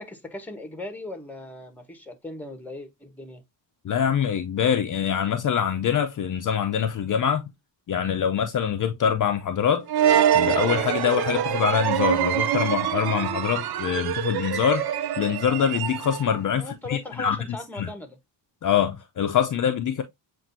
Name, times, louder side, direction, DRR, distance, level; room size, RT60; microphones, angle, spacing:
voice 1, 0.0-3.4 16.6-18.2, left 1 dB, 5° left, 1.0 m, -38 dB
voice 2, 3.8-7.5 7.9-9.9 10.3-14.9 15.2-17.4 17.8-17.9 18.6-20.0, left 8 dB, 45° left, 0.5 m, -24 dB
sound 1, 9.9-16.4, right 10 dB, 60° right, 0.5 m, -24 dB
7.2 x 2.6 x 2.6 m
cardioid pair, 105°, 43 cm